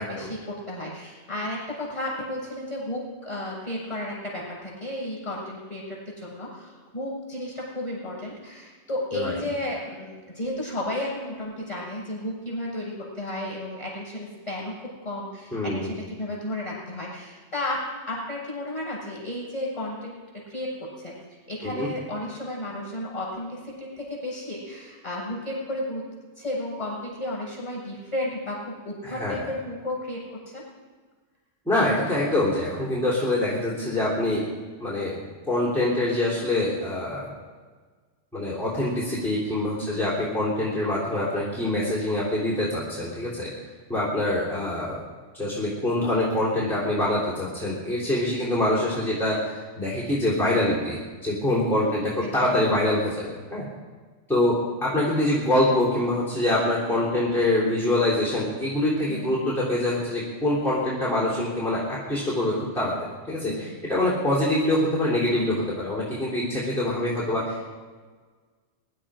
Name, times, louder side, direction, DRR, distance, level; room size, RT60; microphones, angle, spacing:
voice 1, 0.0-21.1 21.5-30.6 39.8-40.1 51.8-52.5 59.1-59.4 63.4-63.8, left 1 dB, 30° left, -4 dB, 6.7 m, -33 dB
voice 2, 15.5-15.9 21.6-21.9 29.0-29.5 31.6-34.4 34.8-35.2 35.5-37.3 38.3-43.5 43.9-45.0 45.3-53.7 54.3-61.8 62.1-62.9 63.3-67.7, left 1 dB, ahead, -7 dB, 3.4 m, -25 dB
23.0 x 11.5 x 5.0 m, 1.4 s
omnidirectional pair, 1.2 m